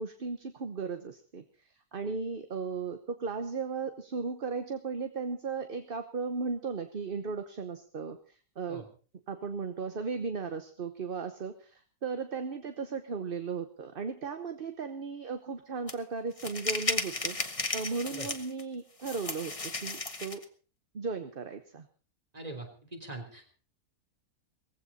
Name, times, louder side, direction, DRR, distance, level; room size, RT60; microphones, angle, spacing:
voice 1, 0.0-1.4 1.9-8.8 9.3-20.4 20.9-21.9, right 5 dB, 40° right, 8 dB, 1.1 m, -36 dB
sound 1, 15.9-16.0 16.4-18.6 19.0-20.4, left 3 dB, 25° left, 1.4 m, -34 dB
voice 2, 22.3-23.5, right 2 dB, 25° right, 4 dB, 3.5 m, -42 dB
19.0 x 15.5 x 4.2 m, 0.39 s
omnidirectional pair, 1.5 m